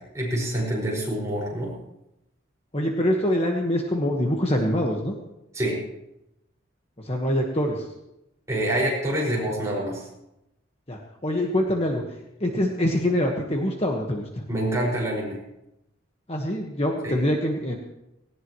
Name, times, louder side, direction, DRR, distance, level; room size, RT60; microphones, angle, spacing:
voice 1, 0.0-1.7 5.5-5.8 8.5-10.1 14.5-15.4 17.0-17.1, right 1 dB, 15° right, -4 dB, 5.6 m, -26 dB
voice 2, 2.7-5.1 7.0-7.9 10.9-12.0 12.4-14.5 16.3-17.7, left 1 dB, 30° left, 1 dB, 1.5 m, -24 dB
19.0 x 18.0 x 3.2 m, 0.88 s
head